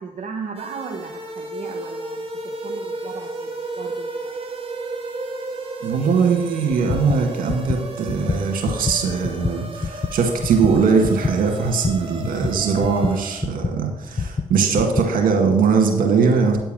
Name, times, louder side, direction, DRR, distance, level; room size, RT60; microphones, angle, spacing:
voice 1, 0.0-4.4, right 5 dB, 60° right, 1 dB, 1.0 m, -36 dB
sound 1, 0.6-13.4, right 2 dB, 40° right, 2.2 m, -33 dB
voice 2, 5.8-16.6, right 5 dB, 75° right, 2 dB, 1.8 m, -20 dB
sound 2, 6.9-13.8 14.2-15.1, left 4 dB, 30° left, 0.5 m, -27 dB
9.1 x 4.6 x 7.4 m, 0.90 s
supercardioid pair, 45°, 14 cm